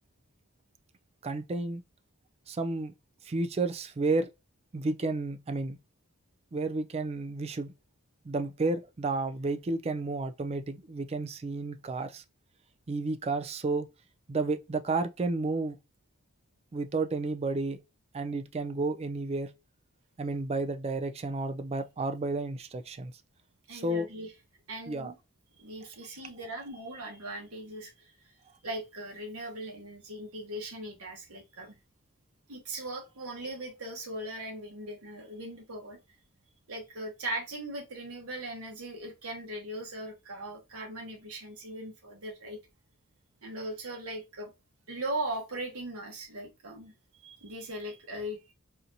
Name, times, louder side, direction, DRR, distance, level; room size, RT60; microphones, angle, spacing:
voice 1, 1.2-1.8 2.5-2.9 3.2-4.3 4.7-5.8 6.5-7.7 8.2-12.2 12.9-13.9 14.3-15.8 16.7-17.8 18.1-19.5 20.2-23.1 23.7-24.1 24.9-25.1, right 3 dB, 25° right, 0.3 m, -31 dB
voice 2, 23.7-24.3 24.7-25.2 25.6-28.1 28.6-31.8 32.5-36.0 36.7-42.6 43.4-44.5 44.9-46.9 47.2-48.5, right 1 dB, 75° right, 1.2 m, -39 dB
4.3 x 2.5 x 2.7 m
head